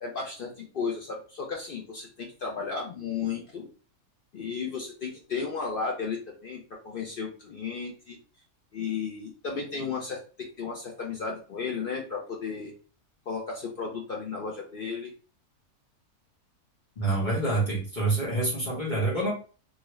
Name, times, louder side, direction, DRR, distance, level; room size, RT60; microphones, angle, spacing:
voice 1, 0.0-3.7 4.3-6.6 6.8-8.2 8.7-12.7 13.3-15.1, left 5 dB, 75° left, 0 dB, 0.5 m, -34 dB
voice 2, 17.0-19.3, right 2 dB, 35° left, -5 dB, 1.0 m, -27 dB
2.8 x 2.4 x 3.0 m, 0.37 s
omnidirectional pair, 1.6 m